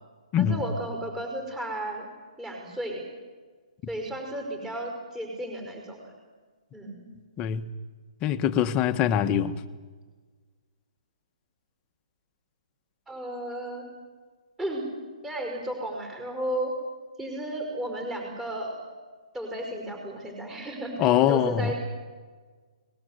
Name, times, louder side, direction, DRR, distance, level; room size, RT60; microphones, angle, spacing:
voice 1, 0.4-2.1 2.4-3.0 3.9-6.1 6.7-7.0 13.1-13.9 14.6-14.8 15.2-16.7 17.2-18.9 19.3-21.7, right 1 dB, 10° right, 5.2 m, -34 dB
voice 2, 8.2-9.6 21.0-21.7, left 10 dB, 25° left, 1.2 m, -23 dB
24.0 x 20.0 x 8.1 m
hypercardioid pair, 145°, 4 cm